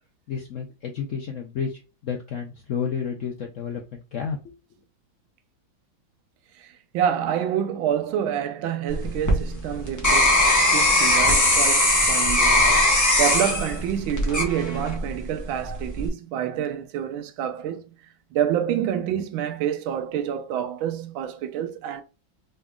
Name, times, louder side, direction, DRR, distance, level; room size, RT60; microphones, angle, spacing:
voice 1, 0.3-4.5, left 6 dB, 85° left, 0.6 m, -31 dB
voice 2, 6.6-10.5 10.7-12.8 13.2-17.9 18.3-22.0, right 9 dB, 85° right, 1.4 m, -27 dB
sound 1, 8.9-15.1 15.6-16.1, left 1 dB, 15° left, 0.5 m, -20 dB
4.0 x 3.6 x 2.3 m
omnidirectional pair, 2.1 m